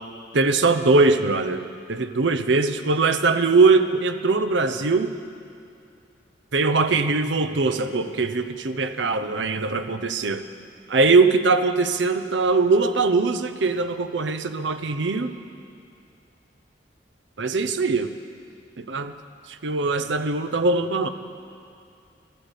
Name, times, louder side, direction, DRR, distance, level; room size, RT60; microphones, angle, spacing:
voice 1, 0.3-1.6 1.9-5.1 6.5-10.4 10.9-15.3 17.4-18.1 18.8-19.1 19.5-21.1, right 3 dB, 85° right, 9 dB, 0.8 m, -21 dB
13.5 x 12.0 x 8.2 m, 2.5 s
head